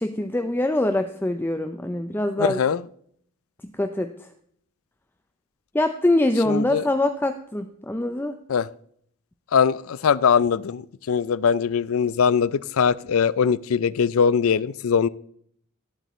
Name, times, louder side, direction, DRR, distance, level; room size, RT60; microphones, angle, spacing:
voice 1, 0.0-2.6 3.8-4.1 5.7-8.4, left 1 dB, 10° left, 7 dB, 0.5 m, -23 dB
voice 2, 2.4-2.8 6.5-6.8 8.5-8.7 9.5-15.1, left 6 dB, 65° left, 20 dB, 0.4 m, -21 dB
18.0 x 8.1 x 3.1 m, 0.66 s
head